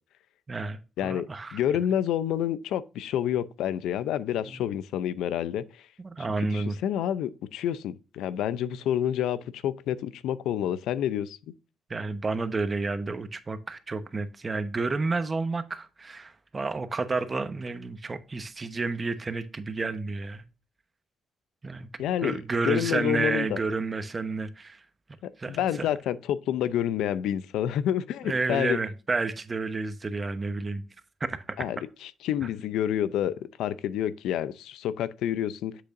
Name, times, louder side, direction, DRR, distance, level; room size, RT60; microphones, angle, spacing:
voice 1, 0.5-1.6 4.5-4.6 6.0-6.8 11.9-20.4 21.6-21.9 22.2-24.8 25.4-25.9 28.3-30.8 31.2-31.6, right 3 dB, 30° right, 0.9 m, -30 dB
voice 2, 1.5-5.9 6.2-11.4 22.0-23.6 25.2-28.8 31.6-35.7, left 10 dB, 85° left, 0.5 m, -29 dB
7.8 x 6.7 x 2.5 m
cardioid pair, 90°, 0 cm